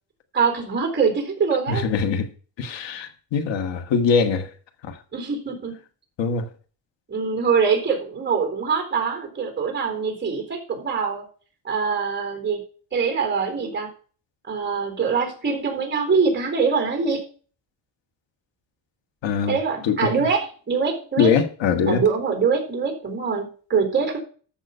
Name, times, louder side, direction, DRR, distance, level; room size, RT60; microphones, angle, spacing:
voice 1, 0.3-1.9 5.1-5.8 7.1-11.2 11.6-12.6 12.9-13.9 14.5-17.2 19.5-21.3 21.9-24.2, right 5 dB, 25° right, 4.1 m, -23 dB
voice 2, 1.7-2.3 2.6-4.5 4.8-5.0 6.2-6.5 19.2-19.6 19.8-20.1 21.2-22.0, left 6 dB, 80° left, 1.7 m, -22 dB
14.0 x 5.8 x 5.5 m
cardioid pair, 135°, 43 cm